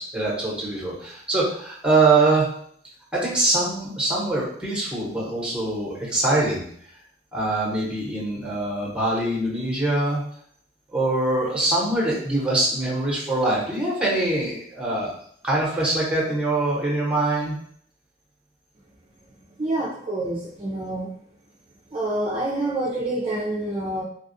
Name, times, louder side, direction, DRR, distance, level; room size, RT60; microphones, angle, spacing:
voice 1, 0.0-2.5 3.1-6.6 7.3-10.2 10.9-15.1 15.4-17.6, right 2 dB, 5° right, -5 dB, 0.9 m, -23 dB
voice 2, 19.4-21.1 21.9-24.0, right 1 dB, 30° right, -6 dB, 0.4 m, -27 dB
3.4 x 2.3 x 2.6 m, 0.62 s
head